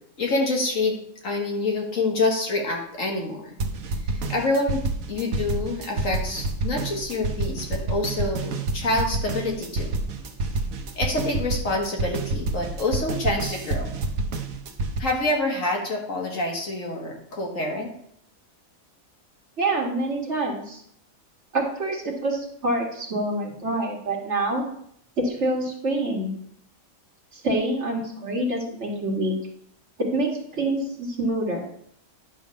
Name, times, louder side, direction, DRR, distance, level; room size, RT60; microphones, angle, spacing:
voice 1, 0.2-1.0 1.2-3.6 4.1-10.0 11.0-13.9 15.0-17.9, left 2 dB, 70° left, 0 dB, 2.0 m, -27 dB
sound 1, 3.6-15.0, right 3 dB, 80° right, 1.2 m, -28 dB
voice 2, 19.6-20.8 21.5-24.6 25.2-26.3 27.3-29.3 30.0-31.6, right 1 dB, 55° right, 0 dB, 1.9 m, -26 dB
10.0 x 3.5 x 6.3 m, 0.67 s
omnidirectional pair, 1.4 m